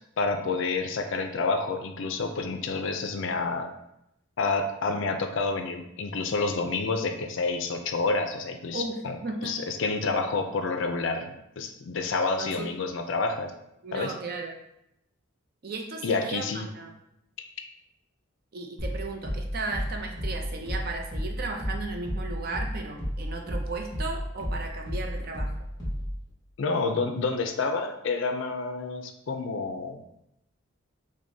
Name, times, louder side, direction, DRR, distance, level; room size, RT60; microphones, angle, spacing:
voice 1, 0.2-3.7 4.4-9.2 9.4-13.5 13.9-14.2 16.0-16.7 26.6-30.0, left 3 dB, 65° left, 5 dB, 0.4 m, -29 dB
voice 2, 8.7-9.6 12.4-12.7 13.8-14.6 15.6-16.9 18.5-25.5, right 3 dB, 45° right, 3 dB, 0.5 m, -35 dB
sound 1, 18.8-26.3, equal, 20° left, 1.3 m, -33 dB
6.0 x 2.1 x 2.7 m, 0.81 s
head